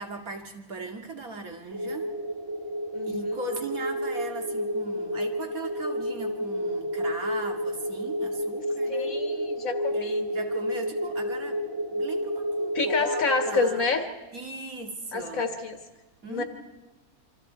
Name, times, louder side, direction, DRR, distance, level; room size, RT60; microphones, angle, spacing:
voice 1, 0.0-2.1 3.0-9.2 9.9-11.6 11.9-13.8 14.3-15.5 16.2-16.4, right 2 dB, 70° right, 2 dB, 2.8 m, -38 dB
sound 1, 1.7-13.7, equal, 15° right, 1.0 m, -30 dB
voice 2, 2.9-3.4 8.9-10.2 12.7-14.0 15.1-15.8 16.3-16.4, left 4 dB, 70° left, 5 dB, 1.8 m, -28 dB
27.5 x 25.5 x 4.6 m, 1.2 s
omnidirectional pair, 1.5 m